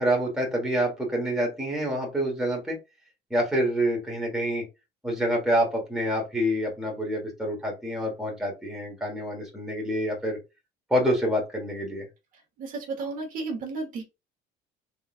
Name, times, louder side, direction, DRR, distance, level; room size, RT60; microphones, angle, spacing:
voice 1, 0.0-2.8 3.3-4.6 5.0-10.4 10.9-12.0, equal, 5° right, -1 dB, 1.2 m, -27 dB
voice 2, 12.6-14.0, right 3 dB, 55° right, 2 dB, 1.1 m, -33 dB
3.7 x 2.4 x 2.4 m, 0.25 s
cardioid pair, 130°, 17 cm